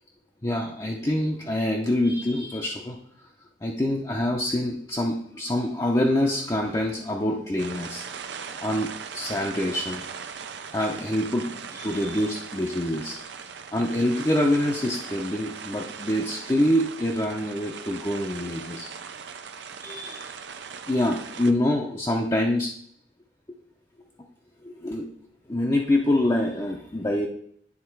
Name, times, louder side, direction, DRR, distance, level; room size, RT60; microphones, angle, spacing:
voice 1, 0.4-3.0 3.6-8.0 8.6-10.0 10.7-13.2 13.7-18.9 19.8-20.3 20.9-22.7 24.6-25.1 25.5-27.3, left 1 dB, 20° left, -2 dB, 0.7 m, -25 dB
sound 1, 7.6-21.5, right 6 dB, 65° right, 0.6 m, -39 dB
9.6 x 3.7 x 4.6 m, 0.65 s
head